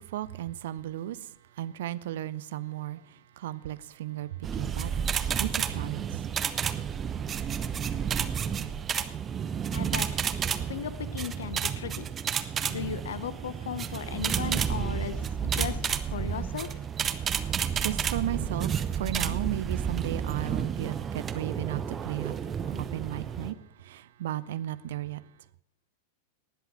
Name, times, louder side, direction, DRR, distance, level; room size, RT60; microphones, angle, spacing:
voice 1, 0.1-1.2 1.6-3.0 3.4-4.3 4.6-5.1 5.4-6.1 17.8-22.3 22.7-23.6 23.9-25.2, right 13 dB, 55° right, 0.6 m, -34 dB
sound 1, 4.4-23.5, right 7 dB, 25° right, 0.9 m, -31 dB
voice 2, 9.7-10.3 10.7-12.1 12.4-16.8, left 8 dB, 65° left, 0.8 m, -37 dB
19.0 x 8.0 x 6.0 m
figure-of-eight pair, 90°, 0 cm